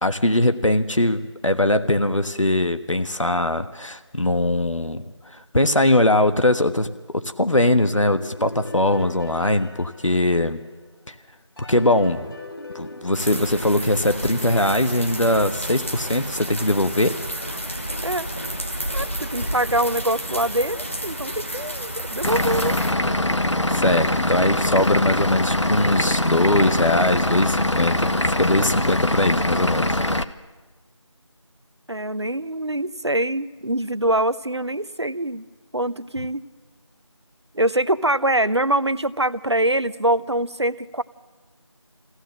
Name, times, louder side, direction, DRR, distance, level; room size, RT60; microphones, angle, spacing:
voice 1, 0.0-10.6 11.1-11.2 11.7-12.2 12.7-17.2 19.0-19.1 23.7-30.0, left 1 dB, 90° left, 8 dB, 1.4 m, -21 dB
sound 1, 8.0-10.9 11.6-14.4, left 2 dB, 50° left, 2.8 m, -41 dB
sound 2, 13.1-22.9, equal, 25° left, 1.3 m, -31 dB
voice 2, 18.9-22.8 31.9-35.4 35.7-36.4 37.5-41.0, right 1 dB, 60° right, 15 dB, 0.8 m, -24 dB
Vehicle / Engine, 22.2-30.2, left 1 dB, 70° left, 1.2 m, -22 dB
24.0 x 16.5 x 7.5 m, 1.3 s
figure-of-eight pair, 175°, 16 cm